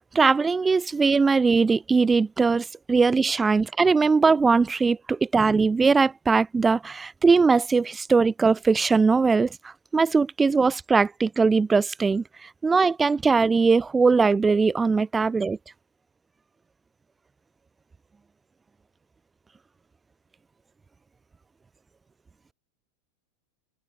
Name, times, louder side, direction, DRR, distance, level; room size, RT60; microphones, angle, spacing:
voice 1, 0.1-9.5 9.9-12.2 12.6-15.6, right 4 dB, 15° right, 5.4 m, -20 dB
supercardioid pair, 140°, 0 cm